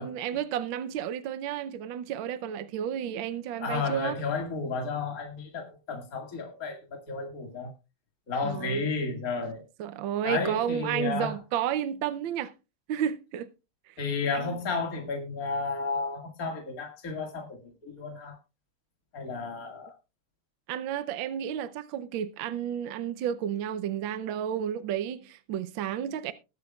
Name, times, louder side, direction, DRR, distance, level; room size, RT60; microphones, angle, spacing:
voice 1, 0.0-4.1 8.4-8.8 9.8-12.5 12.9-13.5 14.3-14.6 20.7-26.3, right 9 dB, 75° right, 1.5 m, -32 dB
voice 2, 3.6-7.7 8.3-9.7 10.2-11.3 14.0-18.4 19.1-19.9, left 4 dB, 45° left, 2.4 m, -32 dB
21.5 x 8.0 x 2.3 m
omnidirectional pair, 2.2 m